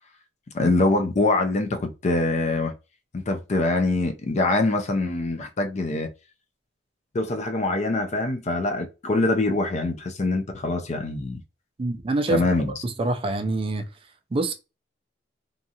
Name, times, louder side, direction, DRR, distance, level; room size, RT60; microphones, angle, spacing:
voice 1, 0.5-2.7 3.1-6.1 7.1-11.4 12.3-12.7, left 2 dB, 40° left, 0.4 m, -24 dB
voice 2, 11.8-12.4 12.8-13.9 14.3-14.5, right 2 dB, 30° right, 0.3 m, -25 dB
2.7 x 2.3 x 2.7 m
head